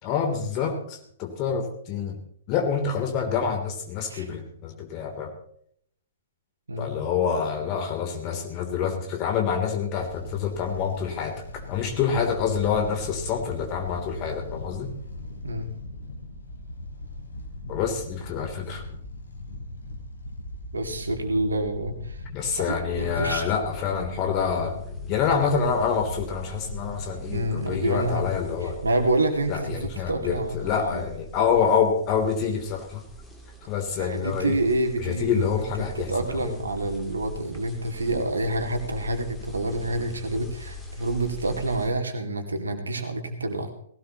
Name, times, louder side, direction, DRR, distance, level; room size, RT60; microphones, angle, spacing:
voice 1, 0.0-2.2 2.5-5.3 6.8-14.9 17.7-19.0 22.3-24.8 25.1-28.8 29.5-33.0 33.7-34.6 35.0-36.6, left 6 dB, 30° left, 3 dB, 3.2 m, -27 dB
sound 1, 10.0-28.8, left 1 dB, 65° left, 4.0 m, -39 dB
voice 2, 20.7-22.2 22.6-23.4 27.3-28.3 28.6-31.0 34.0-35.5 35.8-43.7, right 2 dB, 70° right, 5 dB, 2.4 m, -28 dB
sound 2, 24.6-41.9, right 2 dB, 5° left, 2.5 m, -42 dB
19.0 x 17.0 x 3.0 m, 0.67 s
figure-of-eight pair, 115°, 0 cm